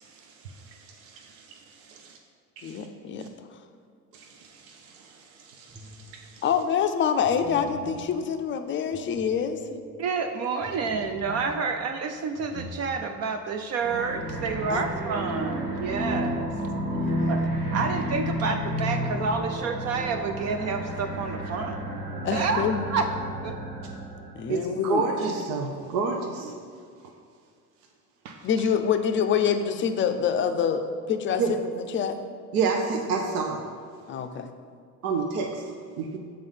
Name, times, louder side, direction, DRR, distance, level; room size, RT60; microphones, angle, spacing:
voice 1, 0.0-2.2 2.6-2.8 3.2-3.3 4.1-6.4 24.5-26.5 28.2-28.4 31.4-31.5 32.5-33.6 35.0-36.2, right 4 dB, 65° right, 2 dB, 0.7 m, -30 dB
voice 2, 2.6-3.6 6.4-9.8 14.7-14.9 16.8-17.5 18.2-18.3 21.9-22.9 24.3-25.0 28.4-32.2 34.1-34.5, left 7 dB, 25° left, 8 dB, 0.5 m, -27 dB
sound 1, 5.7-6.4 7.2-10.0 10.6-16.8 17.1-17.2 19.0-19.4, right 1 dB, 10° right, 0.7 m, -43 dB
voice 3, 10.0-16.5 17.3-17.4 17.7-21.8 22.3-23.1 23.4-23.6, right 4 dB, 35° right, 6 dB, 0.4 m, -29 dB
sound 2, 13.8-24.4, right 1 dB, 80° right, 1.1 m, -31 dB
6.9 x 3.9 x 5.5 m, 2.2 s
hypercardioid pair, 65°, 46 cm